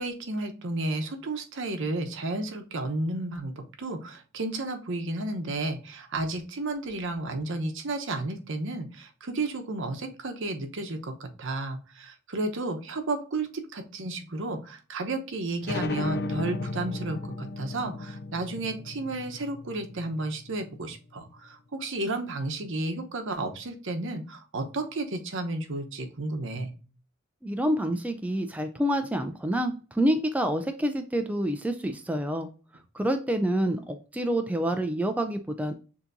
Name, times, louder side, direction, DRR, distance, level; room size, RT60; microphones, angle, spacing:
voice 1, 0.0-26.8, right 2 dB, 65° right, 6 dB, 0.9 m, -32 dB
sound 1, 15.6-20.9, left 2 dB, 50° left, 0.5 m, -35 dB
voice 2, 27.4-32.5 32.9-35.7, right 1 dB, 5° right, 6 dB, 0.3 m, -27 dB
6.8 x 2.8 x 2.5 m, 0.36 s
head